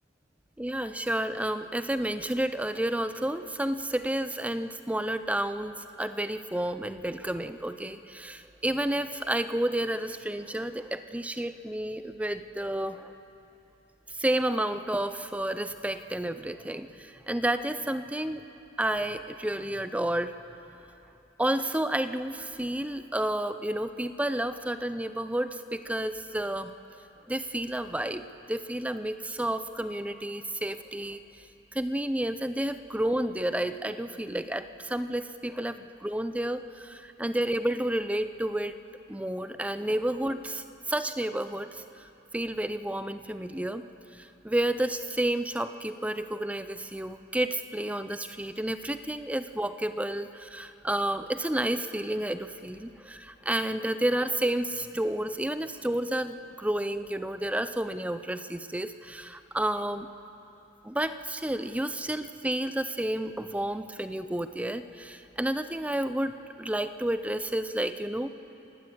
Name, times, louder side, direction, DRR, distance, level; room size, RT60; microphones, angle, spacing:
voice 1, 0.6-13.1 14.1-18.4 18.8-20.3 21.4-26.7 27.3-31.5 31.7-38.8 39.1-42.1 42.3-43.8 44.1-60.1 60.8-68.3, right 1 dB, 5° right, 11 dB, 0.6 m, -31 dB
28.0 x 18.0 x 7.9 m, 3.0 s
head